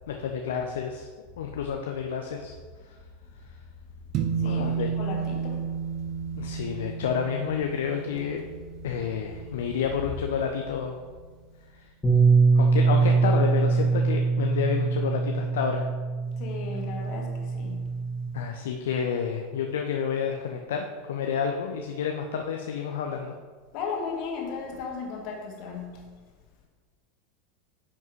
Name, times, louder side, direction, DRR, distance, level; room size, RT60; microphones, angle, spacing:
voice 1, 0.1-1.1 1.4-2.6 2.8-3.0 4.4-4.9 6.4-8.4 8.8-11.0 11.7-11.9 12.5-15.9 18.3-23.3, left 7 dB, 70° left, 0.6 m, -30 dB
sound 1, 4.1-10.7, right 7 dB, 45° right, 1.3 m, -33 dB
voice 2, 4.4-6.0 16.4-17.9 23.7-26.0, left 5 dB, 55° left, 1.9 m, -36 dB
Bass guitar, 12.0-18.3, right 4 dB, 20° left, 1.8 m, -23 dB
9.6 x 5.4 x 3.2 m
figure-of-eight pair, 85°, 0 cm